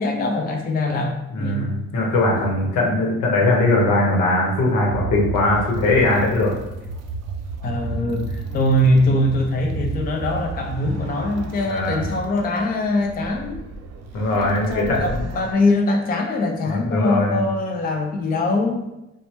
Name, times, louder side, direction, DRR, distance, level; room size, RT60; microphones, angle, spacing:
voice 1, 0.0-1.7 2.5-2.6 7.6-13.6 14.3-18.8, left 1 dB, 30° left, 3 dB, 0.4 m, -22 dB
voice 2, 1.3-6.6 11.7-12.0 14.1-15.2 16.7-17.4, left 2 dB, 85° left, -2 dB, 0.9 m, -20 dB
sound 1, 4.9-15.5, right 3 dB, 60° right, 0.5 m, -32 dB
2.8 x 2.1 x 3.1 m, 0.95 s
cardioid pair, 90°, 30 cm